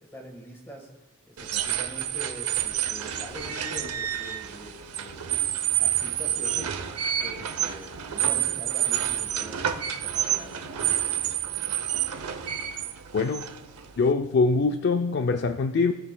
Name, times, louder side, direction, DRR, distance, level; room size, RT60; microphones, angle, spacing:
voice 1, 0.0-0.9 1.3-5.3 5.8-6.7 7.2-10.9, equal, 10° left, 2 dB, 1.3 m, -44 dB
sound 1, 1.4-14.1, right 10 dB, 90° right, 0.7 m, -29 dB
voice 2, 13.1-13.4 14.0-15.9, left 4 dB, 50° left, 7 dB, 0.4 m, -23 dB
16.5 x 6.4 x 2.2 m, 1.1 s
head